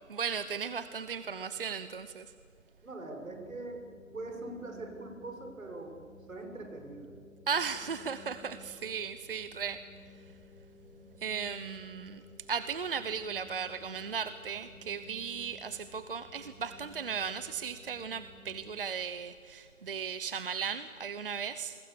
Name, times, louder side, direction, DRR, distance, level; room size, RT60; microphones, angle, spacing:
voice 1, 0.1-2.3 7.5-9.8 11.2-12.2 12.5-21.7, right 6 dB, 40° right, 12 dB, 0.9 m, -36 dB
voice 2, 2.8-3.9 4.1-6.0 6.3-7.1, right 2 dB, 70° right, 3 dB, 6.7 m, -42 dB
sound 1, 3.2-18.8, left 3 dB, ahead, 3.5 m, -55 dB
28.5 x 22.5 x 7.1 m, 2.2 s
figure-of-eight pair, 155°, 42 cm